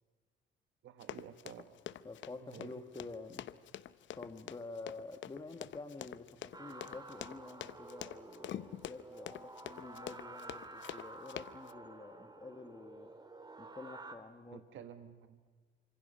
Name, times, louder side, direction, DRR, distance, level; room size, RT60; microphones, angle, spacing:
voice 1, 0.8-1.7 2.4-2.7 14.5-15.5, right 9 dB, 75° right, 9 dB, 1.4 m, -52 dB
Run, 1.0-11.7, left 11 dB, 70° left, 0.8 m, -46 dB
voice 2, 2.0-3.5 4.1-13.1 13.6-14.6, left 3 dB, 20° left, 7 dB, 1.7 m, -49 dB
sound 1, 6.5-14.2, right 2 dB, 20° right, 2.5 m, -51 dB
29.0 x 26.0 x 5.6 m, 1.5 s
cardioid pair, 90°, 20 cm